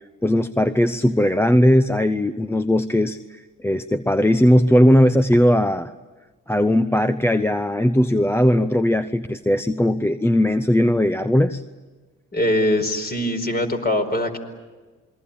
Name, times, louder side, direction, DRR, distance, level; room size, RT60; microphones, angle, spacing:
voice 1, 0.2-5.9 6.5-11.6, equal, 10° left, 11 dB, 0.8 m, -18 dB
voice 2, 12.3-14.4, left 1 dB, 30° left, 6 dB, 4.7 m, -22 dB
28.0 x 22.0 x 8.7 m, 1.3 s
cardioid pair, 90°, 30 cm